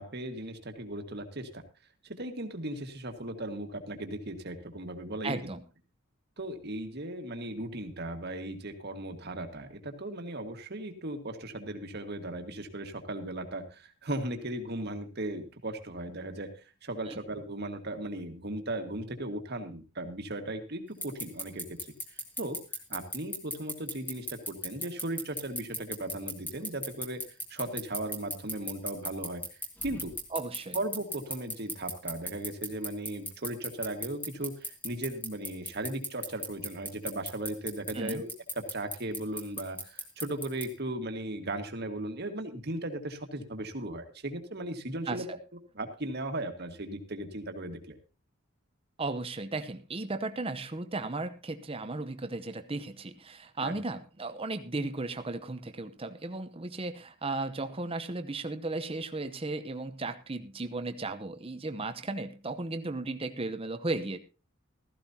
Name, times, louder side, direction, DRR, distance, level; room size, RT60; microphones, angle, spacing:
voice 1, 0.0-1.6 2.0-5.4 6.4-16.5 16.8-21.6 22.4-22.6 22.9-29.4 29.8-30.1 30.7-38.3 38.6-45.3 45.7-48.0 53.6-53.7, right 1 dB, 50° right, 5 dB, 1.7 m, -37 dB
voice 2, 5.2-5.6 17.1-17.2 30.3-30.8 37.9-38.2 45.1-45.4 49.0-64.2, right 2 dB, 30° right, 9 dB, 0.8 m, -35 dB
sound 1, 21.0-40.6, left 1 dB, 10° left, 1.6 m, -35 dB
15.5 x 14.0 x 2.8 m, 0.32 s
head